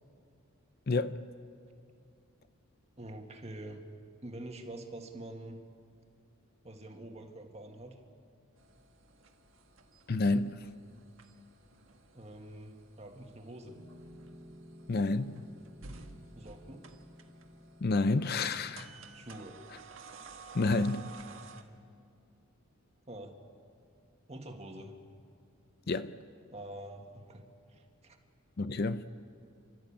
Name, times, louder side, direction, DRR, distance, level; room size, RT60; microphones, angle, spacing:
voice 1, 0.9-1.2 10.1-10.7 14.9-15.4 17.8-19.0 20.5-21.1 25.9-26.2 28.6-29.0, left 3 dB, 45° left, 12 dB, 0.5 m, -29 dB
voice 2, 3.0-3.8 4.2-5.6 6.6-8.0 12.1-13.8 16.3-16.9 19.1-19.6 23.1-23.4 24.3-25.0 26.5-28.2, right 1 dB, 30° right, 3 dB, 1.7 m, -46 dB
sound 1, 8.6-21.6, right 4 dB, 65° right, 1.5 m, -54 dB
Piano, 13.6-18.7, equal, 5° right, 2.5 m, -54 dB
29.5 x 13.0 x 8.7 m, 2.4 s
head